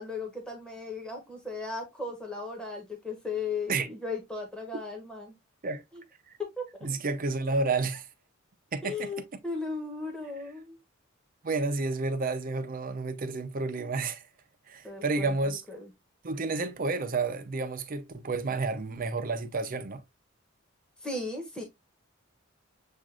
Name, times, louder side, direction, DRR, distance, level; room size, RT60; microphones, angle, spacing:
voice 1, 0.0-5.3 5.9-6.0 6.6-7.0 8.8-10.8 14.8-15.9 18.8-19.0 21.0-21.6, left 3 dB, 5° left, 1.1 m, -36 dB
voice 2, 6.8-8.1 8.7-9.1 11.4-14.2 14.7-15.6 16.2-20.0, right 3 dB, 40° right, 0.6 m, -30 dB
7.3 x 2.5 x 2.4 m
head